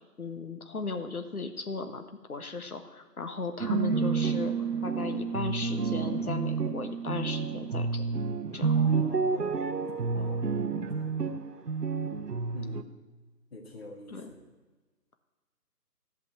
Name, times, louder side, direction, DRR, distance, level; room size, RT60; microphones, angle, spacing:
voice 1, 0.2-2.0 2.3-8.2 8.5-8.8 14.1-14.3, left 4 dB, 60° left, 7 dB, 1.5 m, -36 dB
sound 1, 3.6-12.8, right 5 dB, 70° right, 1.0 m, -29 dB
voice 2, 8.7-9.7 10.1-11.2 12.5-12.9 13.5-14.4, left 1 dB, 35° left, 1 dB, 2.1 m, -45 dB
14.5 x 5.9 x 9.1 m, 1.3 s
figure-of-eight pair, 160°, 49 cm